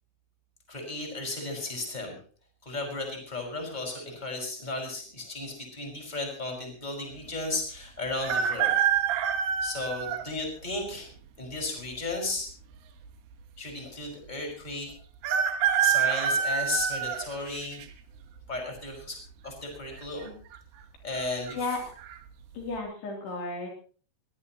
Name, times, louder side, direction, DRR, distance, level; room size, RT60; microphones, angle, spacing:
voice 1, 0.7-2.2 2.6-8.7 9.6-11.1 11.4-12.5 13.6-14.9 15.8-17.8 18.5-20.4 21.0-21.6, left 2 dB, 10° left, 1 dB, 5.4 m, -34 dB
sound 1, 8.2-10.3 10.9-11.0 12.1-12.7 13.0-13.1 13.3-13.4 15.2-17.9 18.4-18.8 19.9-20.3 20.5-20.6 21.2-21.5 22.0-22.2, right 8 dB, 70° right, 2.9 m, -26 dB
voice 2, 21.5-21.9 22.5-23.7, left 3 dB, 65° left, 0 dB, 5.3 m, -33 dB
22.5 x 18.0 x 3.0 m, 0.42 s
omnidirectional pair, 5.1 m